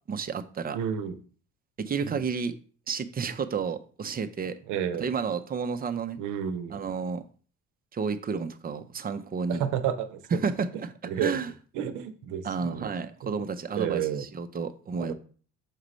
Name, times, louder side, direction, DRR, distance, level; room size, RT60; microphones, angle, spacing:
voice 1, 0.1-0.8 1.8-2.5 2.9-4.5 5.0-6.2 6.7-7.2 7.9-9.6 10.3-10.9 11.2-11.5 12.4-15.1, right 5 dB, 25° right, 9 dB, 0.7 m, -31 dB
voice 2, 0.7-1.2 2.0-2.2 4.7-5.1 6.2-6.8 9.5-10.4 11.1-11.4 11.7-12.9 13.2-13.4 13.8-14.3 15.0-15.1, right 9 dB, 60° right, 10 dB, 0.9 m, -31 dB
6.6 x 4.9 x 3.2 m, 0.42 s
figure-of-eight pair, 55°, 35 cm